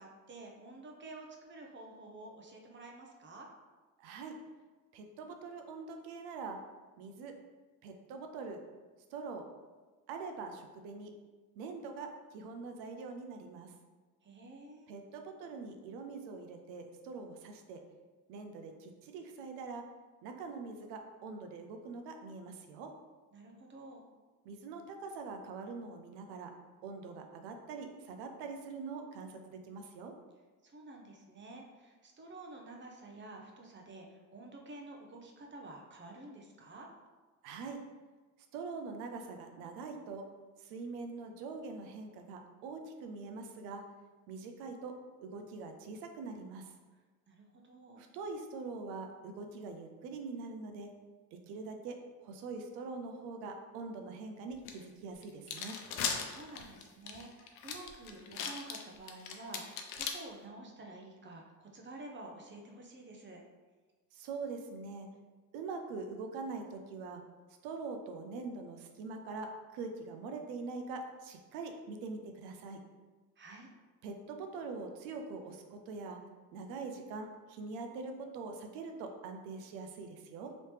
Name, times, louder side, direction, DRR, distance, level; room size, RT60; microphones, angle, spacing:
voice 1, 0.0-3.5 14.2-14.9 23.3-24.0 30.6-36.9 47.3-48.0 56.2-63.4 73.4-73.7, right 2 dB, 30° right, 1 dB, 0.7 m, -50 dB
voice 2, 4.0-4.3 4.9-6.6 7.0-7.3 7.8-8.6 9.1-9.4 10.1-11.1 11.6-13.7 14.9-17.8 18.3-19.8 20.2-22.9 24.5-26.5 26.8-30.1 37.4-37.8 38.5-40.2 40.6-43.8 44.3-44.9 45.2-46.6 48.0-50.9 51.5-52.0 52.2-55.8 64.1-65.1 65.5-67.2 67.6-69.5 69.7-72.8 74.0-76.2 76.5-80.5, right 4 dB, 80° right, 5 dB, 0.6 m, -43 dB
sound 1, 54.6-54.7 55.2-60.1, left 7 dB, 80° left, 0.6 m, -38 dB
3.1 x 2.8 x 3.2 m, 1.3 s
supercardioid pair, 80°, 38 cm